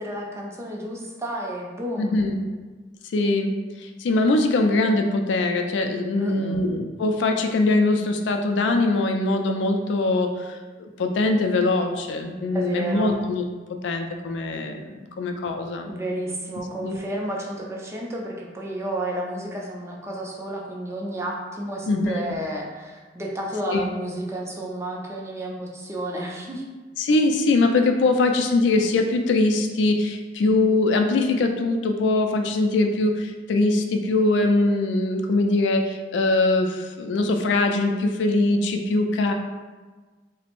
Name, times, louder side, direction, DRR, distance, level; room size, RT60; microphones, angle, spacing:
voice 1, 0.0-2.3 6.2-6.7 12.5-13.2 15.1-15.2 15.9-26.6, right 1 dB, 15° right, -2 dB, 0.4 m, -31 dB
voice 2, 2.0-2.4 3.1-13.4 13.8-15.9 16.8-17.0 21.9-22.2 23.7-23.8 27.0-39.3, left 2 dB, 70° left, 5 dB, 0.3 m, -22 dB
3.2 x 2.0 x 2.9 m, 1.3 s
head